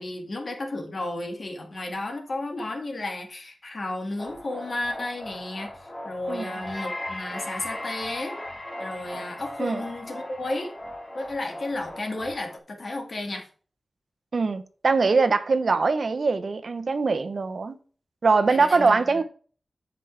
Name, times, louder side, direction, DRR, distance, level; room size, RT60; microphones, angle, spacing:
voice 1, 0.0-8.4 8.8-10.7 11.1-13.4 18.5-19.2, left 2 dB, 55° left, 2.1 m, -33 dB
sound 1, 4.2-12.6, left 1 dB, 30° left, 2.0 m, -38 dB
voice 2, 6.3-6.6 9.6-9.8 14.3-17.8 18.2-19.2, right 4 dB, 65° right, 0.8 m, -22 dB
14.5 x 5.2 x 3.4 m
wide cardioid pair, 100°, 0 cm